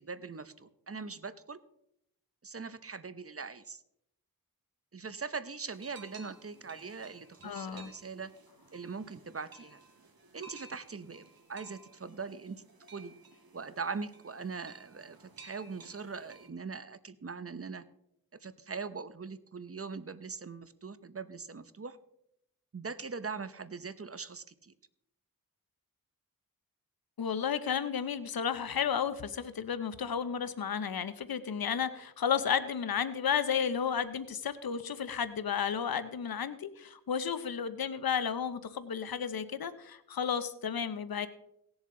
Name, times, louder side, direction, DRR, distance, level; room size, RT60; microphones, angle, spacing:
voice 1, 0.0-1.6 2.4-3.8 4.9-8.3 8.7-9.8 10.3-12.6 12.9-13.1 13.5-17.8 18.4-22.0 22.7-24.7, right 5 dB, 40° right, 14 dB, 0.8 m, -41 dB
sound 1, 5.7-16.5, right 3 dB, 75° right, 1.7 m, -56 dB
voice 2, 7.4-7.9 27.2-41.3, left 7 dB, 80° left, 13 dB, 0.8 m, -33 dB
18.0 x 7.1 x 3.8 m, 0.80 s
cardioid pair, 45°, 35 cm